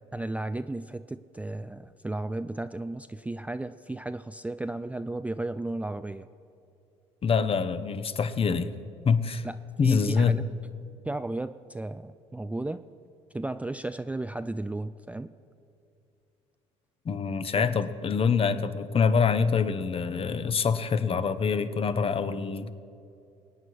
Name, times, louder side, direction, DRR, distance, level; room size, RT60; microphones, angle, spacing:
voice 1, 0.1-6.3 9.4-9.6 9.8-10.5 11.0-12.8 13.3-15.3 17.5-17.7, right 2 dB, 10° right, 11 dB, 0.4 m, -34 dB
voice 2, 7.2-8.7 9.0-9.4 9.8-10.4 17.1-22.7, left 5 dB, 40° left, 12 dB, 0.8 m, -25 dB
22.0 x 9.2 x 4.8 m, 2.6 s
hypercardioid pair, 60°, 16 cm